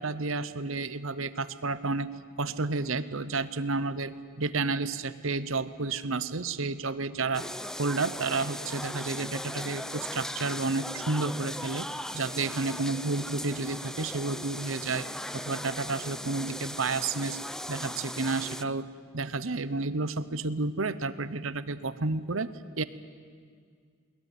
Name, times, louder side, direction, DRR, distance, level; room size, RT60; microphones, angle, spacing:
voice 1, 0.0-2.1 2.4-7.4 7.8-11.9 12.1-15.1 15.3-17.4 17.7-22.5 22.8-22.9, right 3 dB, 70° right, 14 dB, 0.9 m, -31 dB
sound 1, 7.3-18.6, left 1 dB, 5° left, 0.6 m, -38 dB
21.5 x 19.5 x 9.3 m, 2.1 s
head